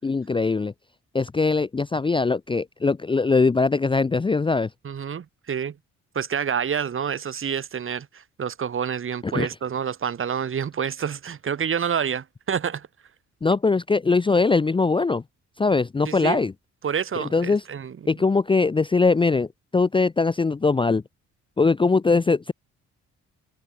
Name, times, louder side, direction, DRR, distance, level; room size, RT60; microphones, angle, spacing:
voice 1, 0.0-0.7 1.1-4.7 9.2-9.5 13.4-15.2 15.6-16.5 17.3-17.6 18.1-21.0 21.6-22.5, left 4 dB, 15° left, 0.6 m, -21 dB
voice 2, 4.8-5.8 6.1-12.9 16.1-16.4 16.8-18.1, right 7 dB, 45° right, 1.6 m, -28 dB
cardioid pair, 90°, 30 cm